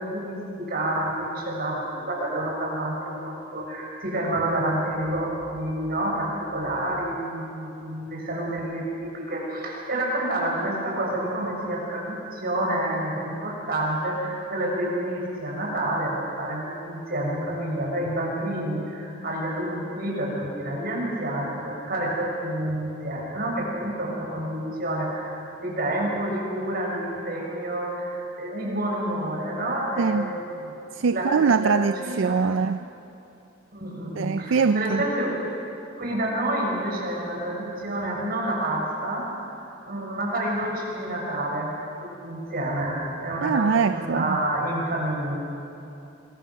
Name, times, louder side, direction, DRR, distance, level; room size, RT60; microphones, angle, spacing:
voice 1, 0.0-32.4 33.7-35.4 36.0-39.3 39.8-45.4, right 1 dB, 50° right, 6.9 m, -29 dB
voice 2, 30.0-30.4 30.9-32.9 34.2-35.1 43.4-44.4, right 5 dB, 65° right, 0.5 m, -23 dB
26.5 x 23.0 x 6.5 m
head